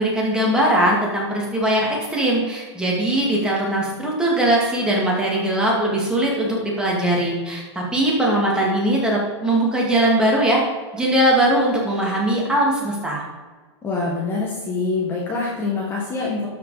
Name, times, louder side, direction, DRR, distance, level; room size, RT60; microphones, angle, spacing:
voice 1, 0.0-10.6 10.9-13.2, right 1 dB, 5° right, -3 dB, 2.3 m, -20 dB
voice 2, 13.8-16.5, left 3 dB, 15° left, -4 dB, 1.7 m, -25 dB
12.5 x 5.1 x 4.9 m, 1.4 s
hypercardioid pair, 140°, 15 cm